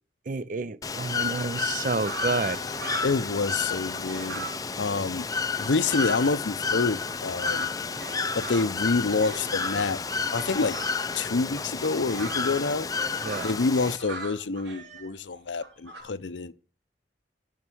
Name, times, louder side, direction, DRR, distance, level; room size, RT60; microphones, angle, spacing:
voice 1, 0.3-2.6 13.2-13.5, right 4 dB, 45° right, 0.5 m, -29 dB
Bird / Water, 0.8-14.0, left 5 dB, 20° left, 0.4 m, -31 dB
sound 1, 2.0-3.2 3.5-6.3 6.8-11.0 11.5-16.0, right 3 dB, 85° right, 3.6 m, -40 dB
voice 2, 3.0-4.4 4.8-5.2 5.6-7.7 8.4-10.0 10.3-10.8 11.1-12.9 13.4-16.5, left 4 dB, 85° left, 0.7 m, -27 dB
11.0 x 5.5 x 6.2 m
head